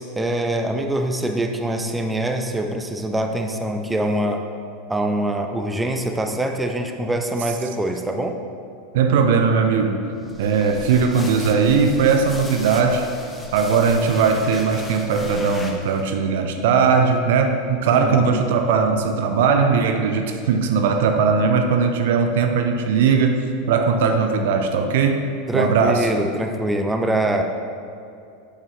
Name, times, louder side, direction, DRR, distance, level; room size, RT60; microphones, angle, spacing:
voice 1, 0.0-4.4 4.9-8.4 17.9-18.4 25.5-27.4, right 1 dB, 10° right, 5 dB, 0.6 m, -24 dB
voice 2, 8.9-10.1 10.4-13.1 13.5-26.1, right 5 dB, 65° right, 6 dB, 0.5 m, -19 dB
sound 1, 10.2-16.1, left 2 dB, 10° left, 0.9 m, -37 dB
7.5 x 6.0 x 3.1 m, 2.5 s
figure-of-eight pair, 80°, 0 cm